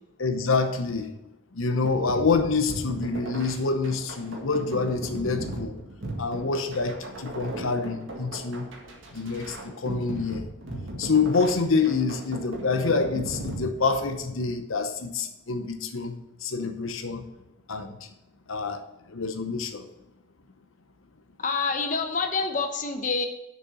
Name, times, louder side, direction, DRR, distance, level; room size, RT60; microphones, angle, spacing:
voice 1, 0.2-1.1 1.5-5.8 6.2-8.7 9.1-10.5 11.0-17.2 17.7-18.0 18.5-18.8 19.1-19.8, left 4 dB, 75° left, 7 dB, 0.8 m, -27 dB
sound 1, 1.8-14.4, right 1 dB, 65° right, 2.0 m, -37 dB
voice 2, 21.4-23.3, left 4 dB, 35° left, 5 dB, 0.9 m, -27 dB
6.8 x 6.4 x 7.0 m, 0.93 s
head